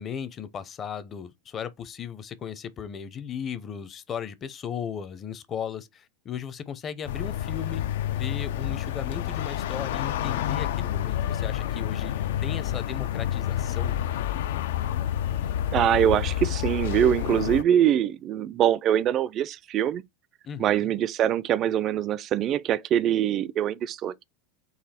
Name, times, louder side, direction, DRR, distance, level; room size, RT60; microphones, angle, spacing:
voice 1, 0.0-12.1 12.4-14.0 20.4-20.9, left 8 dB, 30° left, 0.6 m, -36 dB
sound 1, 7.1-17.6, left 11 dB, 80° left, 0.4 m, -29 dB
voice 2, 15.7-20.0 20.6-24.3, right 10 dB, 40° right, 0.4 m, -23 dB
4.0 x 2.7 x 4.3 m
supercardioid pair, 120°, 0 cm